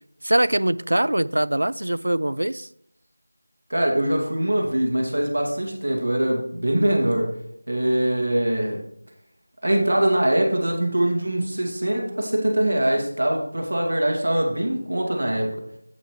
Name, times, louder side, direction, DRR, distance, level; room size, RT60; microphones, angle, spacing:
voice 1, 0.2-2.7, right 1 dB, 85° right, 0.3 m, -22 dB
voice 2, 3.7-7.3 7.7-8.8 9.6-15.5, right 1 dB, 55° right, 2.1 m, -22 dB
8.1 x 8.0 x 3.2 m
figure-of-eight pair, 180°, 0 cm